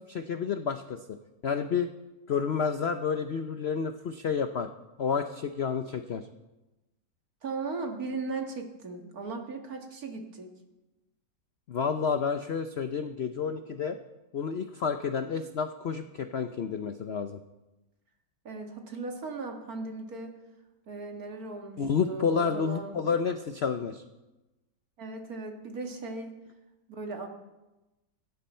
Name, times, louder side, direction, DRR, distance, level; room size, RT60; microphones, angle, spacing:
voice 1, 0.1-1.2 1.4-1.9 2.3-4.7 5.0-6.2 11.7-14.0 14.3-17.4 21.8-24.0, left 6 dB, 60° left, 8 dB, 0.6 m, -30 dB
voice 2, 7.4-10.5 18.4-20.3 20.9-21.8 22.1-22.9 25.0-26.4 26.9-27.3, right 3 dB, 55° right, 3 dB, 2.3 m, -37 dB
18.0 x 16.5 x 4.4 m, 1.1 s
omnidirectional pair, 1.9 m